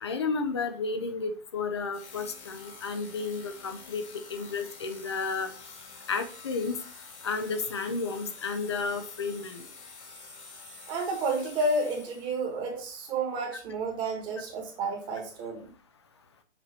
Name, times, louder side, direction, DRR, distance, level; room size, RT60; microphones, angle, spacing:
voice 1, 0.0-5.5 6.1-6.8 7.2-9.7 12.7-12.8, left 4 dB, 25° left, 9 dB, 0.5 m, -32 dB
sound 1, 1.9-12.5, left 4 dB, 70° left, 2.4 m, -48 dB
voice 2, 10.9-15.7, right 2 dB, 15° right, 1 dB, 1.4 m, -31 dB
6.7 x 4.5 x 4.2 m, 0.38 s
hypercardioid pair, 165°, 35 cm